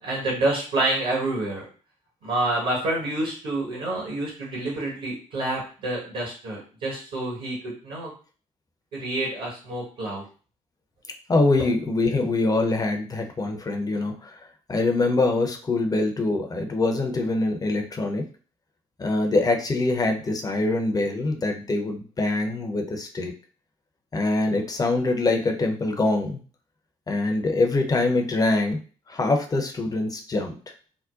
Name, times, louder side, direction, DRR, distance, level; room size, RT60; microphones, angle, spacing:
voice 1, 0.0-1.6 2.2-8.1 8.9-10.2, right 2 dB, 55° right, -4 dB, 1.3 m, -28 dB
voice 2, 11.3-14.4 14.7-18.2 19.0-23.3 24.1-26.3 27.1-28.8 29.1-30.5, left 2 dB, 20° left, 3 dB, 0.7 m, -24 dB
3.7 x 2.2 x 2.4 m, 0.39 s
figure-of-eight pair, 45°, 18 cm